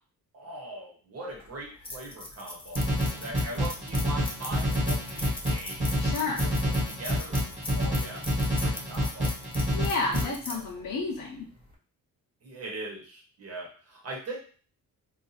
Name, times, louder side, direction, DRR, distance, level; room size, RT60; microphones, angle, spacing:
voice 1, 0.3-6.1 6.4-8.3 8.6-9.3 10.2-10.8 12.4-14.4, right 2 dB, 40° right, -2 dB, 1.0 m, -41 dB
sound 1, 1.3-11.7, left 2 dB, 15° left, 0.5 m, -41 dB
sound 2, 2.8-10.2, equal, 20° right, 1.2 m, -28 dB
voice 2, 6.0-6.4 9.7-11.5, left 3 dB, 60° left, -3 dB, 0.7 m, -31 dB
2.6 x 2.4 x 4.1 m, 0.43 s
wide cardioid pair, 145°, 36 cm